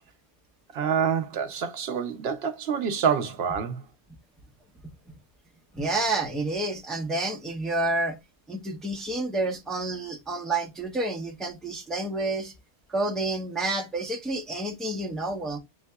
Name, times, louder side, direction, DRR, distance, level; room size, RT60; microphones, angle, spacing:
voice 1, 0.7-3.8, right 7 dB, 70° right, 0.8 m, -27 dB
voice 2, 5.7-8.2 8.5-12.5 12.9-15.6, right 2 dB, ahead, 0.6 m, -29 dB
7.0 x 2.7 x 2.2 m
omnidirectional pair, 1.1 m